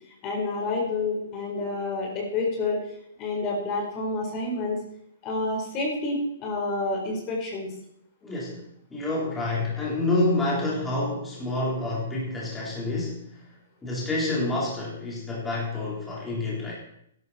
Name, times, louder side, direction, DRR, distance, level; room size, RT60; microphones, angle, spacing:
voice 1, 0.2-2.8 3.2-4.8 5.2-7.7, left 2 dB, 35° left, -1 dB, 4.3 m, -28 dB
voice 2, 8.2-8.7 8.9-13.5 13.8-16.7, left 2 dB, 10° left, -6 dB, 4.1 m, -28 dB
12.5 x 12.0 x 4.4 m, 0.74 s
hypercardioid pair, 130°, 0 cm